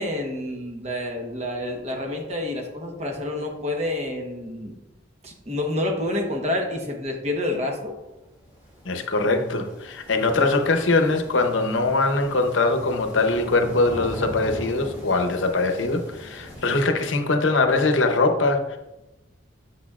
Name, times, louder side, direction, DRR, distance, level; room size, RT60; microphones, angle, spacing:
voice 1, 0.0-4.8 5.2-7.9, left 1 dB, 35° right, 2 dB, 1.1 m, -28 dB
sound 1, 7.9-16.9, equal, 10° right, 2.3 m, -40 dB
voice 2, 8.9-18.8, left 3 dB, 75° left, 5 dB, 0.8 m, -22 dB
8.2 x 6.6 x 2.4 m, 0.98 s
head